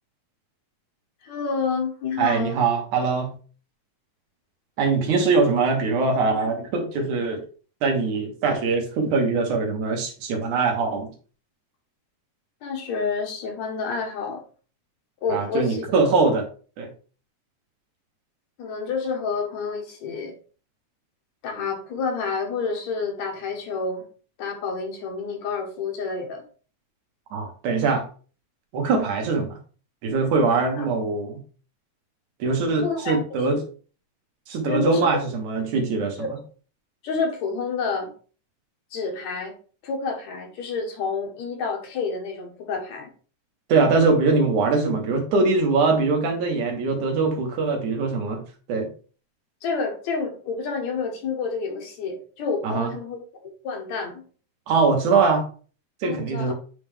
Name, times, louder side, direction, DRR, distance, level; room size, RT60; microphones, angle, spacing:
voice 1, 1.2-2.6 12.6-14.4 15.2-15.9 18.6-20.3 21.4-24.0 24.4-26.4 30.7-30.9 32.8-33.6 34.6-35.1 36.2-36.3 37.0-38.1 38.9-39.5 39.8-43.1 49.6-53.2 53.6-54.2 56.0-56.5, left 4 dB, 70° left, 3 dB, 2.6 m, -29 dB
voice 2, 2.2-3.3 4.8-7.4 7.8-11.1 15.3-16.4 16.8-16.9 27.3-28.0 28.7-29.6 30.0-31.4 32.4-33.6 34.5-36.2 43.7-48.4 48.7-48.9 52.6-52.9 54.7-55.5 56.0-56.5, right 4 dB, 90° right, 2 dB, 2.9 m, -22 dB
7.9 x 3.6 x 3.4 m, 0.39 s
omnidirectional pair, 3.3 m